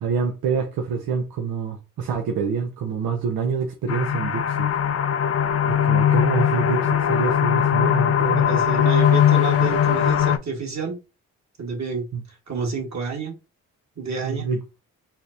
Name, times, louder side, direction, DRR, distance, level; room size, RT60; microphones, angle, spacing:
voice 1, 0.0-4.7 5.7-8.5 12.1-12.2 14.2-14.6, right 5 dB, 75° right, 0.6 m, -26 dB
sound 1, 3.9-10.4, left 9 dB, 40° left, 0.5 m, -20 dB
voice 2, 8.4-11.0 11.6-13.4 14.0-14.5, right 4 dB, 50° right, 1.5 m, -29 dB
4.2 x 2.0 x 2.5 m
supercardioid pair, 45°, 36 cm